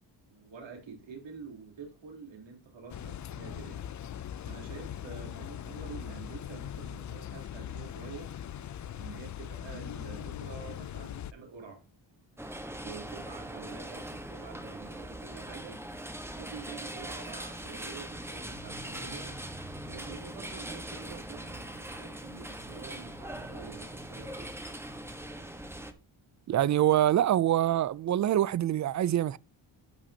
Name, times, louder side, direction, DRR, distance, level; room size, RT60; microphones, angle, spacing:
voice 1, 0.3-3.9 4.5-8.3 8.9-11.8 12.8-15.8 16.3-19.4 19.8-24.5, right 5 dB, 70° right, 3.7 m, -47 dB
sound 1, 2.9-11.3, left 10 dB, 40° left, 0.4 m, -40 dB
sound 2, 12.4-25.9, right 1 dB, 5° right, 1.2 m, -41 dB
voice 2, 26.5-29.4, right 12 dB, 40° right, 0.4 m, -25 dB
13.5 x 5.9 x 2.8 m
cardioid pair, 125°, 46 cm